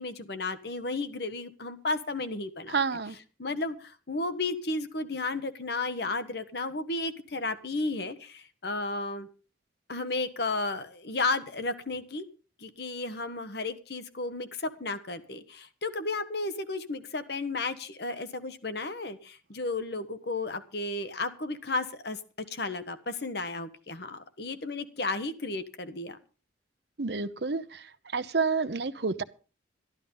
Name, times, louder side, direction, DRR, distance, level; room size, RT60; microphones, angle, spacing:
voice 1, 0.0-2.8 3.4-9.3 9.9-12.2 12.6-22.2 22.5-26.2, left 3 dB, 60° left, 1.2 m, -33 dB
voice 2, 2.7-3.2 27.0-27.9 28.1-29.2, right 4 dB, 60° right, 0.8 m, -29 dB
12.5 x 12.0 x 5.5 m
head